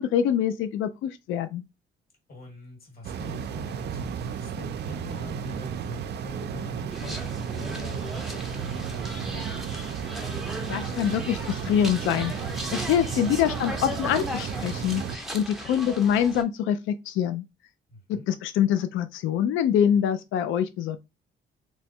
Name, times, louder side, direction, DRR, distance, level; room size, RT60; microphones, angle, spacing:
voice 1, 0.0-1.6 10.7-12.3 12.6-17.4 18.1-21.0, left 9 dB, 80° left, 0.4 m, -25 dB
voice 2, 2.3-9.6 13.3-13.6 17.9-18.3, left 3 dB, 50° left, 2.0 m, -44 dB
sound 1, 3.0-15.2, right 7 dB, 60° right, 0.4 m, -33 dB
sound 2, 6.9-16.4, right 1 dB, ahead, 0.7 m, -37 dB
3.0 x 2.2 x 4.2 m
cardioid pair, 90°, 20 cm